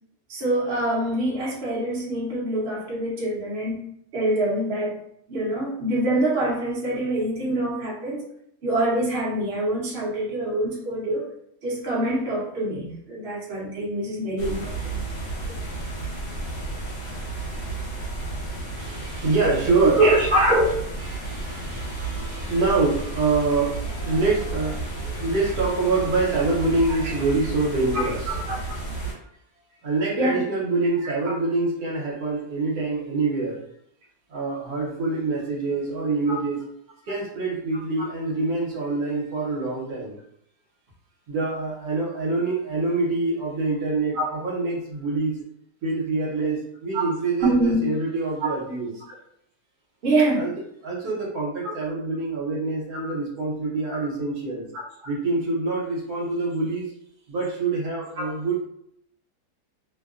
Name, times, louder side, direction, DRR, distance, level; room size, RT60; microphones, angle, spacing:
voice 1, 0.3-3.8 4.1-5.0 5.3-8.2 8.6-11.3 11.6-15.0 20.0-20.8 27.9-28.6 30.1-30.4 36.3-36.4 44.1-44.3 46.9-47.0 47.4-47.8 48.4-48.5 50.0-50.4 51.6-51.7 53.9-54.0 58.2-58.3, right 1 dB, 45° right, -6 dB, 0.9 m, -24 dB
sound 1, 14.4-29.1, right 3 dB, 65° left, 1.1 m, -32 dB
voice 2, 18.8-20.0 21.1-28.7 29.8-33.6 34.3-36.6 37.1-40.2 41.3-45.4 45.8-48.9 50.4-50.5 50.8-54.7 55.1-56.9 57.3-58.6, right 3 dB, 70° right, -5 dB, 1.3 m, -25 dB
2.9 x 2.1 x 2.4 m, 0.72 s
omnidirectional pair, 1.7 m